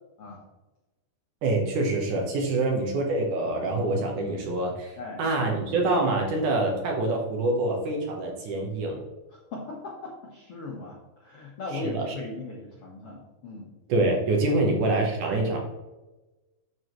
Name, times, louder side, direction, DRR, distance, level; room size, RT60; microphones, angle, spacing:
voice 1, 1.4-9.0 11.7-12.1 13.9-15.6, right 2 dB, 65° right, 1 dB, 2.3 m, -26 dB
voice 2, 2.5-2.8 5.0-5.2 9.3-13.7 14.5-14.6, left 3 dB, 65° left, -2 dB, 1.4 m, -38 dB
9.2 x 7.1 x 3.1 m, 1.1 s
omnidirectional pair, 4.5 m